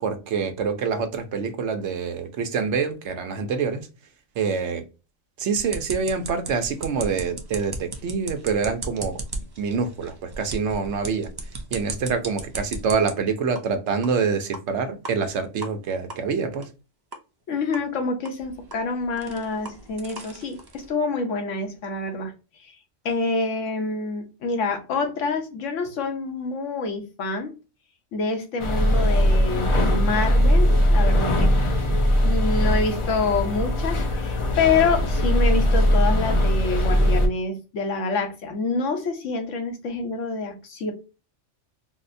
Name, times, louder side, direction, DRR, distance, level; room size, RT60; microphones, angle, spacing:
voice 1, 0.0-3.9 4.4-4.8 5.4-9.2 9.6-11.3 11.7-16.7, right 5 dB, 70° right, 1.0 m, -26 dB
sound 1, 5.5-13.1 13.6-13.7 14.0-14.1 14.5-14.6 15.0-15.1 15.6-15.7 16.1-16.2 16.6-16.7 17.1-17.2 17.7-17.8 18.3-20.9, right 2 dB, 40° right, 0.3 m, -36 dB
voice 2, 17.5-22.3 22.6-22.7 23.0-27.5 28.1-31.5 32.2-40.9, left 4 dB, 85° left, 1.2 m, -27 dB
sound 2, 28.6-37.3, equal, 45° left, 0.4 m, -20 dB
4.0 x 2.1 x 2.5 m
omnidirectional pair, 1.2 m